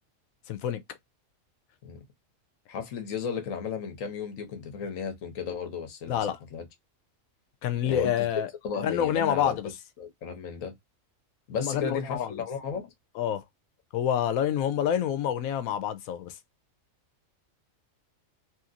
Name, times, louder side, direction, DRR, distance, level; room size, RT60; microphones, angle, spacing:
voice 1, 0.5-0.8 6.1-6.4 7.6-9.7 11.6-12.4 13.2-13.4 13.9-16.3, left 9 dB, 90° left, 1.0 m, -28 dB
voice 2, 2.7-6.3 6.5-6.6 7.8-8.1 8.6-9.6 10.0-10.7 11.5-12.9, left 6 dB, 70° left, 1.2 m, -34 dB
3.0 x 2.8 x 2.4 m
omnidirectional pair, 1.4 m